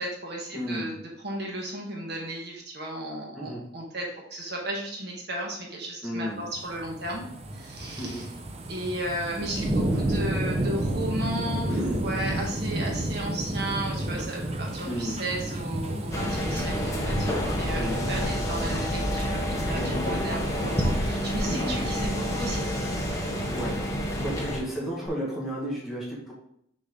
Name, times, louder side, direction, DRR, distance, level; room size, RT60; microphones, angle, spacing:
voice 1, 0.0-7.2 7.5-8.3 8.7-22.6, right 1 dB, 60° right, -1 dB, 1.4 m, -34 dB
voice 2, 0.5-0.9 3.4-3.6 6.0-6.4 8.0-8.2 11.7-12.1 14.8-15.2 17.8-18.0 21.4-21.9 23.5-23.7 24.0-26.3, equal, ahead, -6 dB, 1.8 m, -33 dB
sound 1, 6.5-24.6 25.1-25.2, right 1 dB, 35° right, 0.7 m, -32 dB
sound 2, 16.1-24.6, equal, 15° left, 1.1 m, -28 dB
6.5 x 4.2 x 3.9 m, 0.71 s
head